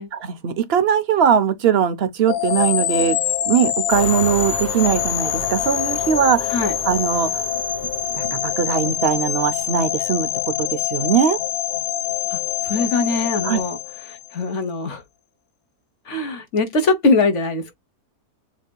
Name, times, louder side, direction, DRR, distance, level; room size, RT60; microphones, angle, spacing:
voice 1, 0.1-3.2 3.5-6.6 6.8-7.4 8.1-11.4 13.4-13.6, right 7 dB, 50° right, 0.8 m, -20 dB
sound 1, 2.3-14.4, left 11 dB, 70° left, 1.1 m, -25 dB
sound 2, 3.9-10.1, right 3 dB, 80° right, 2.1 m, -35 dB
voice 2, 12.3-13.8 14.1-15.0 16.1-17.7, left 3 dB, 50° left, 1.3 m, -22 dB
7.2 x 2.7 x 2.2 m
omnidirectional pair, 1.7 m